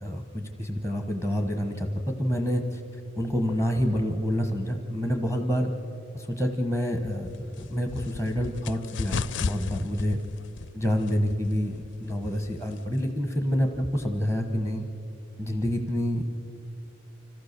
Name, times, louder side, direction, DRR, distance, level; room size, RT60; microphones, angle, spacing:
voice 1, 0.0-5.7 6.1-10.2 10.7-14.9 15.4-16.3, equal, 15° right, 4 dB, 1.1 m, -28 dB
sound 1, 7.0-13.2, left 5 dB, 65° left, 0.4 m, -36 dB
25.5 x 15.5 x 6.7 m, 2.9 s
head